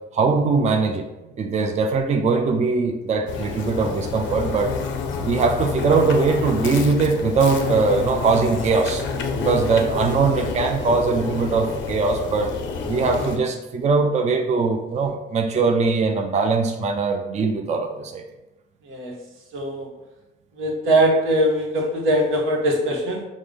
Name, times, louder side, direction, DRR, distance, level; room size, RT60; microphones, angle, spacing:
voice 1, 0.1-1.1 1.4-4.7 5.2-9.0 9.4-12.5 12.9-18.2, right 4 dB, 35° right, 4 dB, 0.4 m, -21 dB
sound 1, 3.3-13.4, left 5 dB, 70° left, 0.5 m, -28 dB
voice 2, 18.8-19.2 19.5-19.9 20.6-23.2, right 1 dB, 85° right, 0 dB, 0.9 m, -21 dB
4.9 x 2.0 x 3.7 m, 0.99 s
cardioid pair, 90°, 20 cm